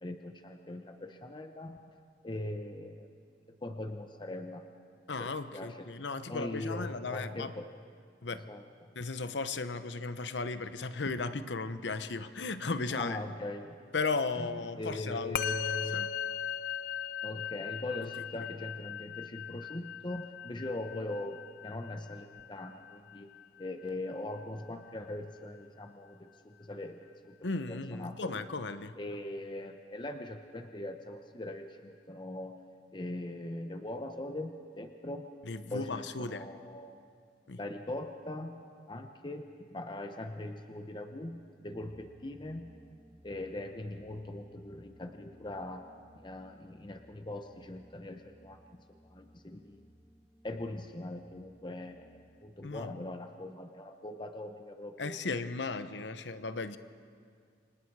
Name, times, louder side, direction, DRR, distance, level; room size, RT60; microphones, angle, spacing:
voice 1, 0.0-1.8 2.2-3.1 3.6-4.7 5.2-5.9 6.3-7.7 8.3-8.6 12.9-13.8 14.4-16.1 17.2-23.3 23.6-28.4 29.0-32.6 32.9-35.3 35.7-37.0 37.6-42.7 43.2-45.9 46.1-49.8 50.4-55.2, left 1 dB, 25° left, 6 dB, 0.9 m, -41 dB
voice 2, 5.1-7.5 8.2-8.5 9.0-13.2 13.9-15.4 15.9-16.1 27.4-28.9 35.5-36.5 37.5-37.6 52.6-52.9 55.0-56.8, left 3 dB, 90° left, 11 dB, 0.9 m, -35 dB
Musical instrument, 15.3-24.9, left 8 dB, 55° left, 0.6 m, -39 dB
Singing Bowl (Deep Sound), 41.7-52.8, equal, ahead, 2.5 m, -60 dB
29.0 x 25.0 x 4.8 m, 2.1 s
head